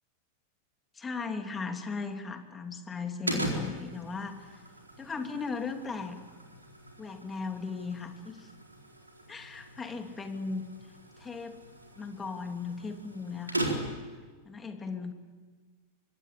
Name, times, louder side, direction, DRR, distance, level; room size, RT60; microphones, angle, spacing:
voice 1, 0.9-4.6 5.0-6.2 7.0-8.5 9.3-10.6 11.2-11.6 12.0-13.7 14.4-15.1, left 4 dB, 15° left, 5 dB, 2.9 m, -37 dB
sound 1, 3.3-14.1, right 1 dB, 85° right, 4.1 m, -39 dB
25.5 x 23.5 x 8.9 m, 1.4 s
figure-of-eight pair, 90°, 0 cm